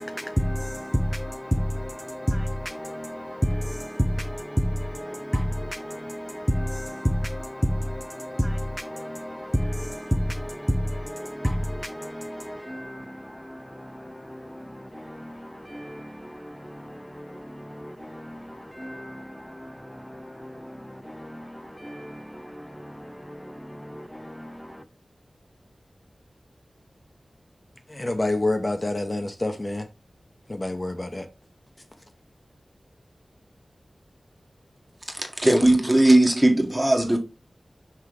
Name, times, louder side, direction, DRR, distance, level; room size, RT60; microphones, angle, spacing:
voice 1, 0.0-24.8, equal, 5° left, 0.5 m, -31 dB
voice 2, 27.9-29.8 30.5-31.3, left 2 dB, 30° left, 1.0 m, -27 dB
voice 3, 35.1-37.2, right 1 dB, 15° right, 1.5 m, -18 dB
6.0 x 3.2 x 4.8 m
wide cardioid pair, 85°, 0 cm